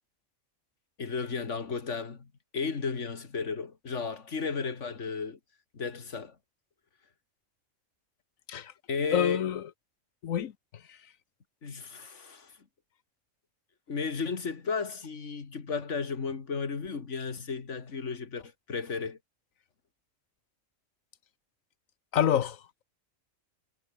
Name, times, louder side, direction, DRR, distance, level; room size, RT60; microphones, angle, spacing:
voice 1, 1.0-2.3 2.5-5.4 5.7-6.4 8.9-9.5 11.6-12.5 13.9-19.2, left 5 dB, 65° left, 2.3 m, -34 dB
voice 2, 9.1-9.6 10.2-10.5 10.9-11.0 22.1-22.6, left 9 dB, 85° left, 1.4 m, -27 dB
omnidirectional pair, 1.4 m